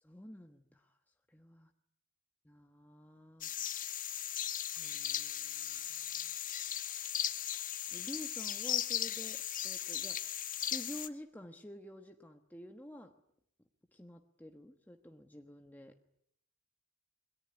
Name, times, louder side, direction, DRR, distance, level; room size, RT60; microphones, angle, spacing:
voice 1, 0.0-1.7 2.4-3.5 4.8-6.3 7.1-7.2 7.6-13.2 13.9-16.0, equal, 10° left, 4 dB, 1.2 m, -50 dB
sound 1, 3.4-11.1, left 10 dB, 40° left, 1.3 m, -37 dB
27.0 x 22.0 x 9.9 m, 0.74 s
head